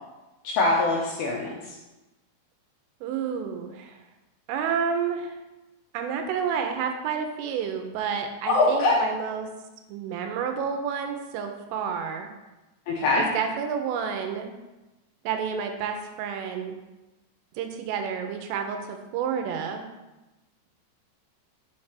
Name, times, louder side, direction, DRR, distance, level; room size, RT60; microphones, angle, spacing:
voice 1, 0.4-1.5 8.5-9.0 12.9-13.2, left 2 dB, 80° left, -3 dB, 2.5 m, -22 dB
voice 2, 3.0-4.0 4.5-5.3 5.9-9.5 9.9-12.3 13.2-14.5 15.2-16.7 17.6-19.9, right 7 dB, 85° right, 5 dB, 3.2 m, -30 dB
7.1 x 3.3 x 5.7 m, 1.0 s
omnidirectional pair, 5.8 m